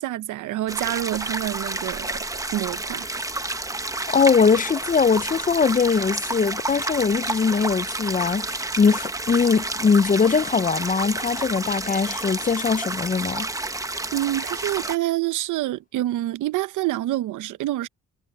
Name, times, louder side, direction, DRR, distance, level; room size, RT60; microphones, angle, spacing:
voice 1, 0.0-3.1 14.1-17.9, right 15 dB, 85° right, 0.8 m, -27 dB
sound 1, 0.7-15.0, right 2 dB, 10° right, 1.0 m, -30 dB
voice 2, 4.1-13.5, left 5 dB, 25° left, 0.6 m, -21 dB
cardioid pair, 90°, 30 cm